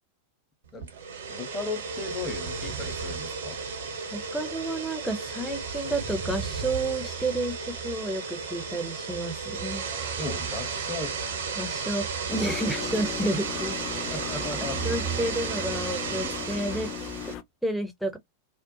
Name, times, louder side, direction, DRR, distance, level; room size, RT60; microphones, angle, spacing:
sound 1, 0.8-17.3, right 5 dB, 60° right, 0.6 m, -33 dB
voice 1, 1.3-3.6 10.2-11.2 14.1-14.8, left 3 dB, 20° left, 0.9 m, -36 dB
voice 2, 4.1-7.5 7.8-9.8 11.6-13.8 14.8-16.9 17.6-18.2, right 1 dB, ahead, 0.6 m, -30 dB
sound 2, 12.3-17.4, left 8 dB, 35° left, 0.3 m, -37 dB
2.5 x 2.1 x 2.5 m
figure-of-eight pair, 90°, 0 cm